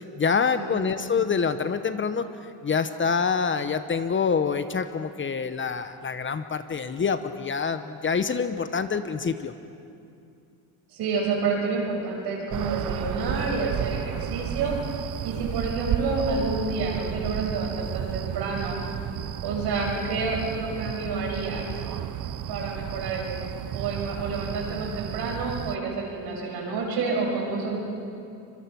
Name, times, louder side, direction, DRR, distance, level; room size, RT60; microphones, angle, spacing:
voice 1, 0.0-2.3 2.6-9.5, left 5 dB, 30° left, 11 dB, 1.0 m, -26 dB
voice 2, 11.0-14.7 15.2-18.8 19.4-21.7 22.5-27.8, right 4 dB, 70° right, -1 dB, 7.1 m, -29 dB
sound 1, 12.5-25.8, right 10 dB, 50° right, 0.9 m, -32 dB
25.0 x 22.0 x 6.1 m, 2.6 s
cardioid pair, 95°, 40 cm